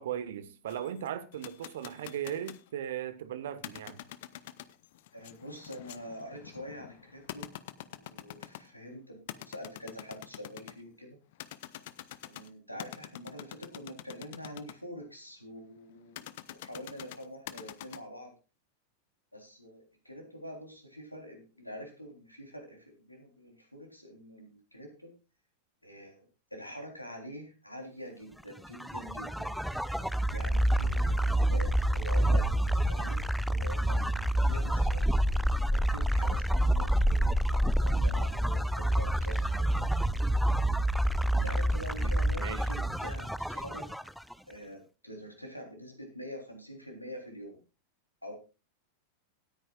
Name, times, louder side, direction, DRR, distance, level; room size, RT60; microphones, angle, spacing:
voice 1, 0.0-4.0 42.0-42.7, right 10 dB, 60° right, 1.3 m, -38 dB
sound 1, 0.7-2.7 3.6-8.8 9.3-10.8 11.3-14.7 16.2-18.0, left 14 dB, 55° left, 0.7 m, -46 dB
voice 2, 5.1-7.5 7.9-11.2 12.2-18.3 19.3-25.1 25.8-26.2 26.5-29.5 30.0-32.4 32.9-35.0 35.6-39.9 41.3-43.8 44.5-47.6 48.2-48.3, equal, 90° left, 3.4 m, -45 dB
sound 2, 28.6-44.3, right 1 dB, ahead, 0.6 m, -28 dB
19.0 x 9.2 x 2.4 m
figure-of-eight pair, 90°, 0 cm